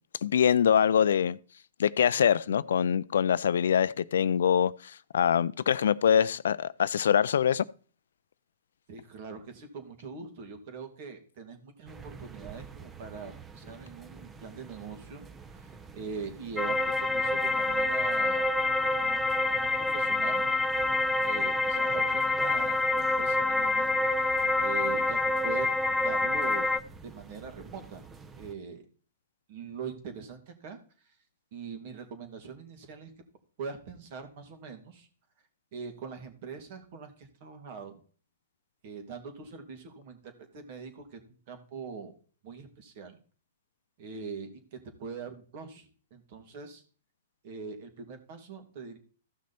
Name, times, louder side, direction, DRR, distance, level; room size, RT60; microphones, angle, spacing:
voice 1, 0.2-1.4 1.8-4.7 5.1-7.6, left 8 dB, 75° left, 0.4 m, -24 dB
voice 2, 8.9-18.5 19.0-19.2 19.6-20.5 21.2-23.9 24.2-25.7 26.0-26.7 27.0-28.0 28.4-28.8 29.5-30.8 31.0-31.1 31.5-33.1 33.6-35.1 35.7-38.0 38.8-41.2 41.5-42.1 42.4-43.2 44.0-46.8 47.4-49.0, right 5 dB, 50° right, 2.7 m, -42 dB
sound 1, 11.9-28.5, right 5 dB, 15° right, 0.8 m, -49 dB
sound 2, 16.6-26.8, left 2 dB, 5° left, 0.4 m, -27 dB
14.5 x 6.2 x 4.3 m
hypercardioid pair, 130°, 0 cm